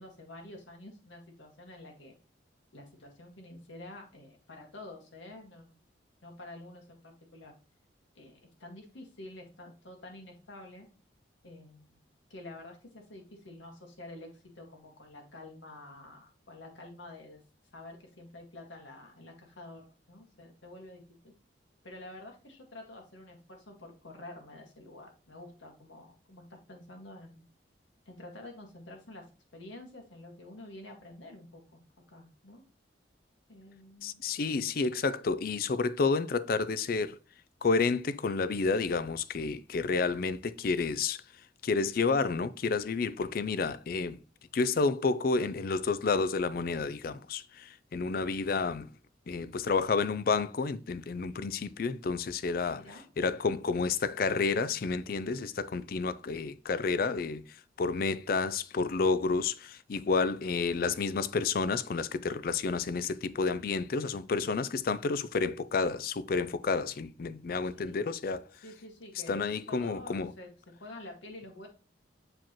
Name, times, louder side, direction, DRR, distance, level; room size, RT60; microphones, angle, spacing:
voice 1, 0.0-2.1 2.7-5.7 6.2-7.5 8.1-10.9 11.4-12.0 12.3-17.4 17.7-19.8 20.1-21.3 21.8-27.4 28.1-29.2 29.5-31.8 32.1-32.6 33.5-34.3 52.8-53.0 67.7-68.0 68.6-69.4 69.7-70.5 70.8-71.7, left 2 dB, 80° left, 1.9 m, -48 dB
voice 2, 34.0-37.2 37.6-41.2 41.6-44.2 44.5-48.9 49.3-52.8 53.2-68.5 69.3-70.3, left 4 dB, 50° left, 0.4 m, -30 dB
7.3 x 4.8 x 3.0 m
head